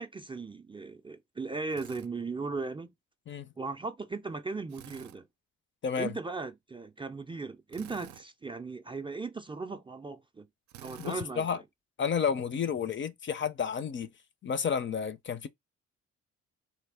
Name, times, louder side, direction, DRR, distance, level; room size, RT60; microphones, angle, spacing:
voice 1, 0.0-2.9 3.6-5.3 6.0-10.5 10.8-11.6, right 4 dB, 15° right, 0.4 m, -37 dB
Drill, 1.7-2.1 4.7-5.2 7.7-8.3 10.7-11.3, right 12 dB, 70° right, 0.5 m, -49 dB
voice 2, 11.0-11.6 12.0-14.1 14.4-15.5, left 7 dB, 40° left, 0.5 m, -31 dB
3.3 x 2.3 x 3.4 m
cardioid pair, 90°, 30 cm